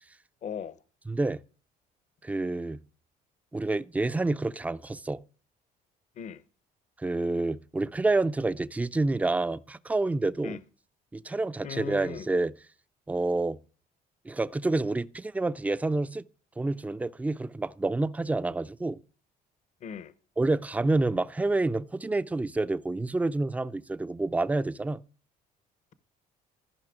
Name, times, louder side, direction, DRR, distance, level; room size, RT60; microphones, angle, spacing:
voice 1, 0.4-0.8 6.2-6.4 10.4-10.6 11.6-12.3 19.8-20.1, left 7 dB, 45° left, 0.7 m, -38 dB
voice 2, 1.1-1.4 2.2-2.8 3.5-5.2 7.0-10.6 11.1-12.5 13.1-13.6 14.2-16.2 16.6-19.0 20.4-25.0, right 2 dB, 10° right, 0.4 m, -28 dB
14.0 x 5.5 x 4.9 m
cardioid pair, 110°, 17 cm